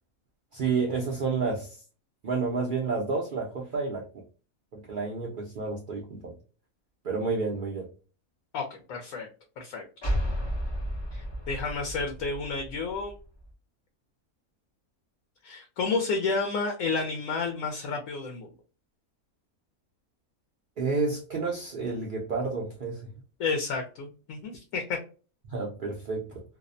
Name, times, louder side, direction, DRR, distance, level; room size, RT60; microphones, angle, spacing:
voice 1, 0.5-1.7 2.2-4.2 4.7-6.3 7.0-7.9 20.8-23.1 25.5-26.4, right 4 dB, 75° right, 0.4 m, -30 dB
voice 2, 8.5-9.3 9.6-9.8 11.1-13.1 15.4-18.5 23.4-25.0, left 4 dB, 70° left, 1.0 m, -31 dB
sound 1, 10.0-13.5, equal, 40° left, 0.4 m, -33 dB
2.6 x 2.0 x 2.5 m
omnidirectional pair, 1.5 m